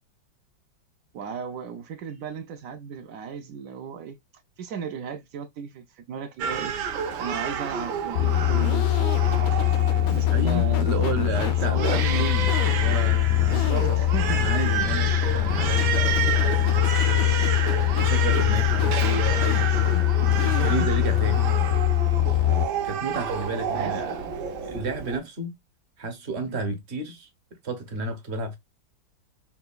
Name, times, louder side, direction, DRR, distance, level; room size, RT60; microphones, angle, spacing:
voice 1, 1.1-4.2 4.6-6.7 7.2-9.8 10.1-11.1 11.6-12.0 13.4-14.4 20.3-20.9 23.7-24.0 26.5-26.7, right 6 dB, 85° right, 0.7 m, -35 dB
Crying sobbing, 6.4-25.2, right 7 dB, 70° right, 1.3 m, -30 dB
sound 1, 8.2-22.6, left 13 dB, 85° left, 0.7 m, -22 dB
voice 2, 10.3-13.8 14.2-21.5 22.8-24.2 24.6-25.5 26.0-27.3 27.6-28.6, right 2 dB, 45° right, 1.0 m, -32 dB
5.8 x 2.3 x 2.3 m
omnidirectional pair, 2.1 m